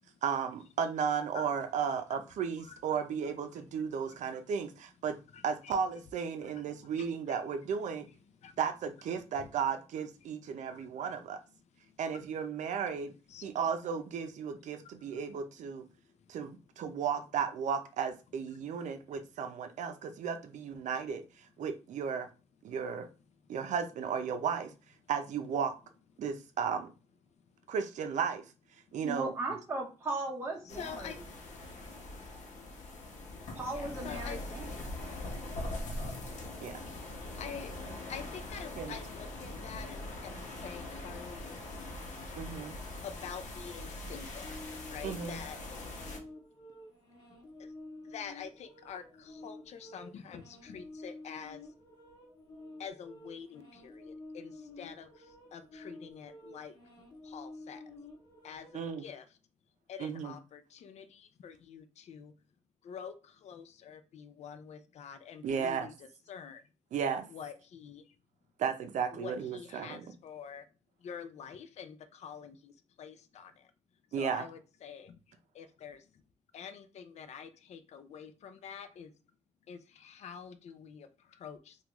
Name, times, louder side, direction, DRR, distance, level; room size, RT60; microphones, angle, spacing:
voice 1, 0.2-5.2 5.4-8.1 8.6-11.4 12.0-13.1 13.4-15.8 16.3-22.3 22.6-23.1 23.5-24.7 25.1-25.7 26.2-26.9 27.7-28.5 28.9-29.3 36.6-36.9 38.8-39.0 42.4-42.8 45.0-45.4 58.7-59.0 60.0-60.3 65.4-65.9 66.9-67.3 68.6-70.0 74.1-74.5, right 7 dB, 80° right, 0.5 m, -34 dB
voice 2, 2.6-3.0 4.1-4.2 5.3-5.8 6.4-6.5 6.8-7.4 8.4-8.6 10.7-11.1 11.8-12.5 12.9-13.0 13.3-13.7 14.7-15.1 15.9-16.3 18.5-19.2 27.5-27.7 28.9-29.0 30.6-31.4 33.7-34.8 35.1-35.3 37.3-37.7 38.1-41.6 43.0-45.6 47.6-47.7 48.0-51.7 52.8-56.7 57.2-57.8 58.4-59.4 59.9-62.3 62.8-66.6 67.3-68.1 69.1-70.7 71.0-73.7 74.1-76.2 76.5-79.1 79.7-81.8, left 7 dB, 65° left, 0.4 m, -47 dB
voice 3, 29.0-31.2 33.5-34.7, right 2 dB, 20° right, 0.6 m, -37 dB
sound 1, 30.7-46.2, left 2 dB, 85° left, 0.8 m, -42 dB
sound 2, 44.4-58.9, left 2 dB, 40° left, 1.1 m, -51 dB
3.5 x 2.4 x 3.0 m
wide cardioid pair, 140°, 12 cm